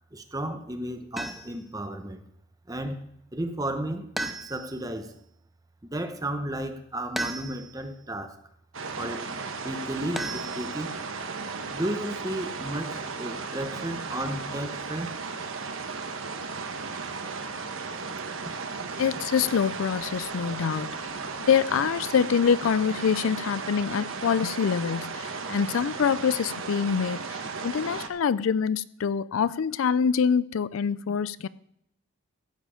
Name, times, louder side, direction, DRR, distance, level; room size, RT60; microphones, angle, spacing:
voice 1, 0.1-2.2 2.7-4.1 4.5-5.1 5.8-8.4 9.0-9.3 9.6-10.9 11.7-15.1, right 1 dB, 15° right, 8 dB, 0.9 m, -33 dB
sound 1, 1.2-1.7 4.2-4.9 7.2-7.9 10.2-11.0, right 1 dB, ahead, 0.5 m, -35 dB
sound 2, 8.7-28.1, right 4 dB, 70° right, 1.1 m, -35 dB
voice 2, 19.0-21.1 21.5-31.5, left 6 dB, 75° left, 17 dB, 0.4 m, -25 dB
14.5 x 7.6 x 5.0 m, 0.76 s
head